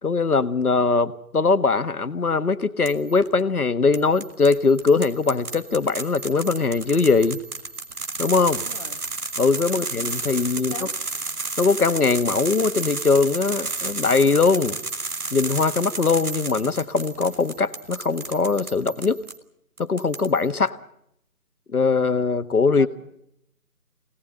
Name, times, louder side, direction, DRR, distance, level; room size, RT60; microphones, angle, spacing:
voice 1, 0.0-7.4 8.2-8.6 9.4-10.7 11.6-14.8 15.3-19.2 19.8-20.7 21.7-22.9, left 4 dB, 70° left, 11 dB, 1.5 m, -21 dB
sound 1, 2.9-3.3 3.9-19.4 19.8-20.5, right 3 dB, 70° right, 2.4 m, -32 dB
voice 2, 8.5-9.0 9.7-9.9 10.6-11.0 22.8-22.9, left 4 dB, 20° left, 6 dB, 1.3 m, -39 dB
25.0 x 18.5 x 8.9 m, 0.78 s
figure-of-eight pair, 160°, 46 cm